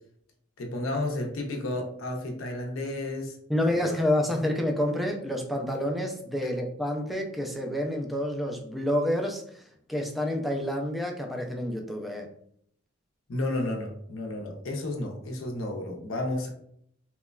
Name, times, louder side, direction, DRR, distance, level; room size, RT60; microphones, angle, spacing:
voice 1, 0.6-3.4 3.6-3.8 13.3-16.5, left 1 dB, 75° left, 2 dB, 0.5 m, -32 dB
voice 2, 3.5-9.6 9.9-12.3, left 1 dB, ahead, 1 dB, 0.3 m, -28 dB
2.9 x 2.2 x 2.2 m, 0.68 s
head